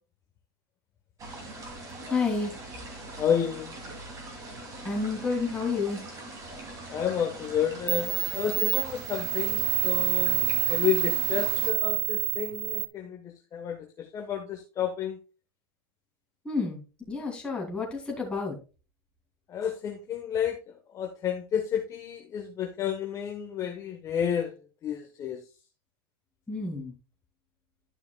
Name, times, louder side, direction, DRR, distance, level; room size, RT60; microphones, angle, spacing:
sound 1, 1.2-11.7, right 2 dB, 25° right, 2.8 m, -42 dB
voice 1, 2.1-2.5 4.8-6.0 16.4-16.8 17.1-18.5 26.5-26.9, left 4 dB, 10° left, -2 dB, 2.9 m, -29 dB
voice 2, 3.2-3.8 6.9-15.2 19.5-20.6 20.9-24.5 24.8-25.4, left 8 dB, 25° left, 3 dB, 1.2 m, -31 dB
sound 2, 7.4-7.5 7.9-12.9, right 26 dB, 75° right, 1.0 m, -27 dB
12.0 x 5.8 x 2.3 m, 0.32 s
supercardioid pair, 145°, 13 cm